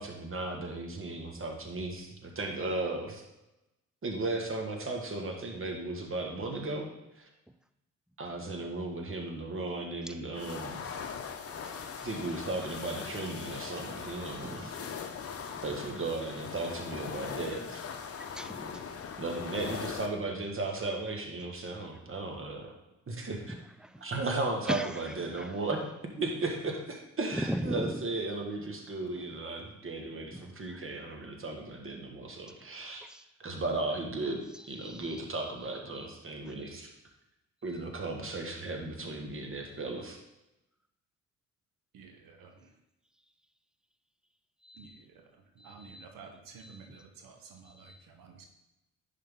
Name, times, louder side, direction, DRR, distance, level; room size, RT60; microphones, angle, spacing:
voice 1, 0.0-3.2 4.0-7.3 8.2-10.9 12.0-14.7 15.6-17.8 19.2-22.7 23.1-23.6 24.0-25.8 26.2-33.0 33.4-36.9 37.6-40.2, right 2 dB, 35° right, 2 dB, 1.7 m, -36 dB
sound 1, 10.3-20.1, left 6 dB, 40° left, 0.9 m, -40 dB
voice 2, 11.6-12.1 14.4-14.7 15.5-15.6 18.2-18.8 23.8-24.0 24.7-25.5 27.3-28.1 30.3-31.0 33.0-33.2 34.8-35.1 35.9-36.1 36.6-36.7 44.6-45.0 45.6-46.1 46.6-47.0 47.7-48.0, right 1 dB, ahead, 10 dB, 0.5 m, -39 dB
voice 3, 41.9-42.7 44.7-45.3 45.5-48.5, right 5 dB, 65° right, 3 dB, 1.3 m, -52 dB
10.5 x 4.0 x 3.8 m, 0.93 s
hypercardioid pair, 45°, 37 cm